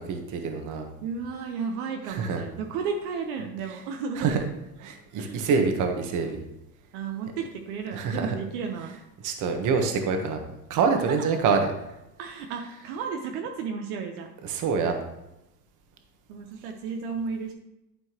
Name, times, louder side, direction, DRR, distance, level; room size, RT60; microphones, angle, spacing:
voice 1, 0.1-0.9 2.1-2.4 4.2-4.4 4.8-6.4 7.9-8.3 9.2-10.4 10.7-11.7 14.4-15.0, right 5 dB, 40° right, 5 dB, 1.3 m, -25 dB
voice 2, 1.0-4.3 5.1-5.5 6.9-9.0 11.1-11.3 12.2-14.3 16.3-17.5, right 5 dB, 60° right, 3 dB, 1.0 m, -33 dB
11.5 x 4.5 x 3.0 m, 0.91 s
supercardioid pair, 115°, 48 cm